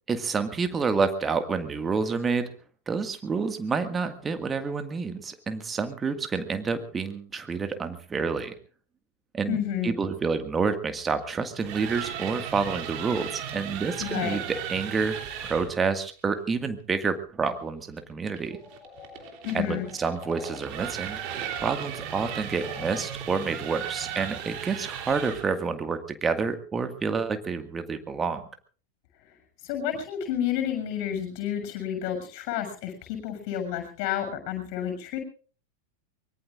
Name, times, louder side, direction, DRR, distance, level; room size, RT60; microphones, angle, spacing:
voice 1, 0.1-2.5 2.9-8.6 9.3-9.6 9.8-15.2 15.4-18.6 19.5-21.2 21.6-28.4, right 5 dB, 15° right, 9 dB, 1.8 m, -28 dB
voice 2, 9.5-9.9 14.0-14.4 19.4-19.9 29.6-35.2, left 10 dB, 45° left, 5 dB, 6.8 m, -30 dB
sound 1, 11.4-15.7 18.3-25.6, right 9 dB, 40° right, 3.2 m, -36 dB
sound 2, 18.5-20.6 20.9-23.0, left 4 dB, 15° left, 7.8 m, -46 dB
24.0 x 22.5 x 2.5 m, 0.40 s
figure-of-eight pair, 90°, 0 cm